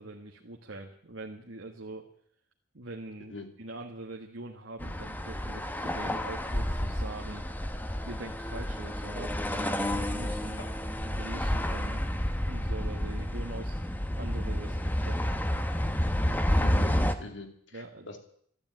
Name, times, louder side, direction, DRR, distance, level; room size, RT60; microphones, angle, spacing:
voice 1, 0.0-2.0 2.7-7.5 8.0-10.7 11.0-13.8 14.2-15.2 17.7-18.1, right 2 dB, 75° right, 2 dB, 1.6 m, -43 dB
sound 1, 4.8-17.1, equal, 10° left, 1.0 m, -30 dB
voice 2, 16.6-18.2, left 2 dB, 70° left, 5 dB, 2.8 m, -43 dB
13.5 x 12.0 x 9.0 m, 0.65 s
head